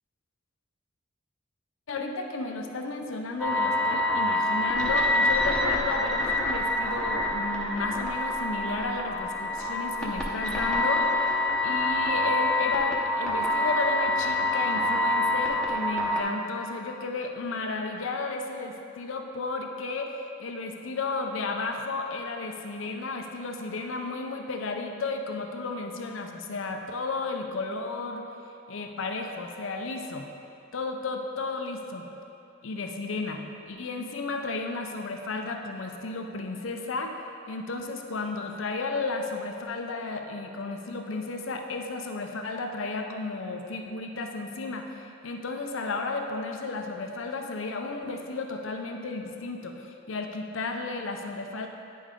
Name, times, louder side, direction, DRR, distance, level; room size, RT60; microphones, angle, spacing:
voice 1, 1.9-28.2 28.7-30.3 30.7-32.1 32.6-37.1 37.5-51.7, left 3 dB, 75° left, 4 dB, 0.6 m, -33 dB
sound 1, 3.4-16.2, left 1 dB, 5° left, 0.8 m, -26 dB
9.5 x 5.4 x 3.7 m, 2.8 s
head